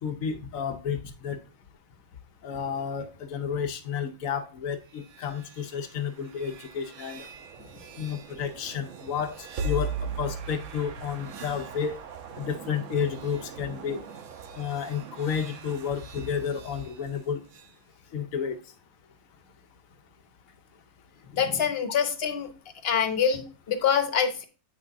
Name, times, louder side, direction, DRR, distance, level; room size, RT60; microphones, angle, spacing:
voice 1, 0.0-1.4 2.4-7.3 7.9-12.0 12.4-14.0 14.5-17.4 18.1-18.7, left 7 dB, 80° left, 7 dB, 1.2 m, -31 dB
sound 1, 4.9-17.7, right 3 dB, 70° right, 1.1 m, -40 dB
voice 2, 21.3-22.5 22.8-24.4, left 7 dB, 50° left, 7 dB, 1.2 m, -25 dB
8.5 x 6.2 x 2.6 m, 0.35 s
omnidirectional pair, 1.4 m